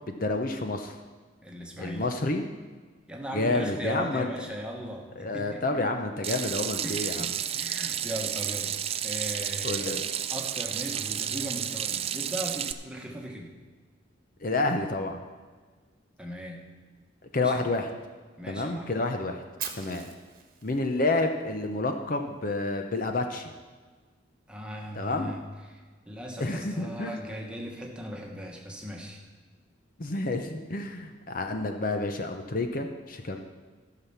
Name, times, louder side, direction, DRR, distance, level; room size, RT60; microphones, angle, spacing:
voice 1, 0.1-0.9 1.8-2.4 3.3-4.3 5.2-7.3 9.6-10.0 14.4-15.2 17.3-17.9 18.5-19.4 19.8-20.1 20.6-23.5 25.0-25.3 26.4-27.2 30.0-33.4, left 2 dB, 45° left, 5 dB, 0.7 m, -29 dB
voice 2, 1.4-2.1 3.1-5.6 6.8-10.0 10.3-13.5 16.2-16.7 17.4-17.5 18.4-18.9 24.5-29.2, equal, 5° right, 0 dB, 1.3 m, -38 dB
Water tap faucet / Sink (filling or washing), 6.2-12.7, right 10 dB, 30° right, 0.4 m, -31 dB
Fire, 19.6-21.6, right 8 dB, 45° right, 1.2 m, -40 dB
13.0 x 5.9 x 7.1 m, 1.4 s
head